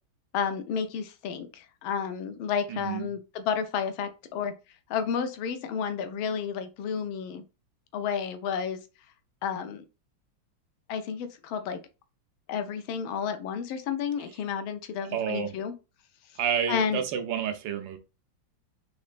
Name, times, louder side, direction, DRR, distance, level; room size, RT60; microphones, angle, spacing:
voice 1, 0.3-4.5 4.9-7.4 7.9-8.8 9.4-9.8 10.9-11.8 12.5-15.7 16.7-17.0, left 7 dB, 80° left, 1.4 m, -31 dB
voice 2, 2.7-3.1 15.0-15.5 16.4-18.0, right 8 dB, 75° right, 1.3 m, -30 dB
4.2 x 3.0 x 2.4 m
omnidirectional pair, 2.2 m